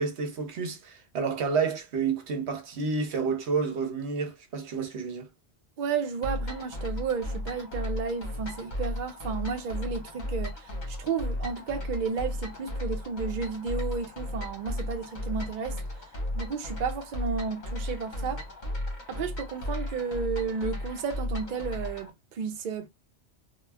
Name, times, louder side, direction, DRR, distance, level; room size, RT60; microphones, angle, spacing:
voice 1, 0.0-5.3, right 5 dB, 70° right, 0.9 m, -30 dB
voice 2, 5.8-15.8 16.3-18.4 19.1-22.9, right 5 dB, 55° right, 0.6 m, -32 dB
sound 1, 6.2-22.1, left 1 dB, 45° left, 0.8 m, -35 dB
2.3 x 2.1 x 3.2 m
omnidirectional pair, 1.2 m